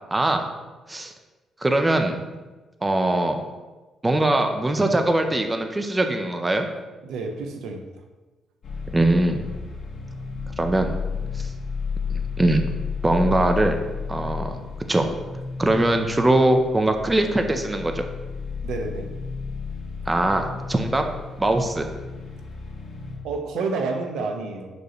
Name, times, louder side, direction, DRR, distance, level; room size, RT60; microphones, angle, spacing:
voice 1, 0.1-0.5 0.9-1.1 1.6-2.4 2.8-3.4 4.0-6.6 8.9-9.4 10.6-10.9 11.3-11.5 12.1-12.6 13.0-13.8 14.1-14.6 14.9-15.1 15.6-18.1 20.1-21.0 21.4-21.9, right 1 dB, 15° right, 5 dB, 0.8 m, -21 dB
voice 2, 7.0-7.9 18.6-19.1 23.2-24.7, right 3 dB, 85° right, 4 dB, 1.0 m, -29 dB
sound 1, 8.6-23.2, left 5 dB, 60° left, 1.8 m, -33 dB
11.0 x 5.3 x 3.2 m, 1.2 s
cardioid pair, 90°, 0 cm